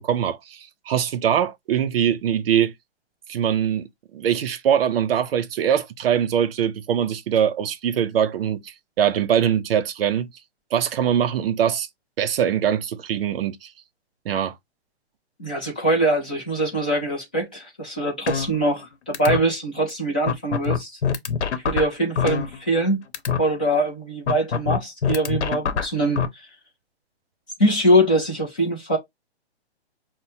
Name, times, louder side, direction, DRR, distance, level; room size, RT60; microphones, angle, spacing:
voice 1, 0.0-2.7 3.3-10.3 10.7-11.9 12.2-13.7 14.2-14.5, right 9 dB, 60° right, 0.7 m, -22 dB
voice 2, 15.4-20.9 21.5-23.0 23.4-26.2 27.6-29.0, right 1 dB, 10° left, 0.3 m, -23 dB
sound 1, 18.3-18.9 19.1-19.4 19.9-20.0 20.3-22.9 23.1-23.4 24.3-26.3, left 7 dB, 90° left, 0.9 m, -24 dB
5.8 x 2.1 x 2.7 m
hypercardioid pair, 160°, 33 cm